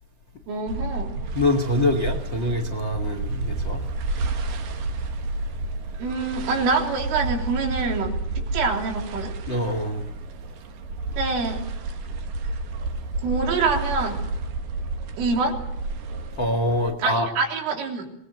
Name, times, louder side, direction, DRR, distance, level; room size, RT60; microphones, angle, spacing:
voice 1, 0.5-1.1 6.0-9.3 11.2-11.6 13.2-14.2 15.2-15.6 17.0-18.1, right 4 dB, 85° right, 1 dB, 6.1 m, -25 dB
sound 1, 0.7-16.9, right 2 dB, 60° right, 2.6 m, -31 dB
voice 2, 1.3-3.8 9.5-10.1 16.4-17.3, left 1 dB, 70° left, 6 dB, 1.1 m, -24 dB
25.0 x 19.5 x 7.9 m, 0.79 s
omnidirectional pair, 5.6 m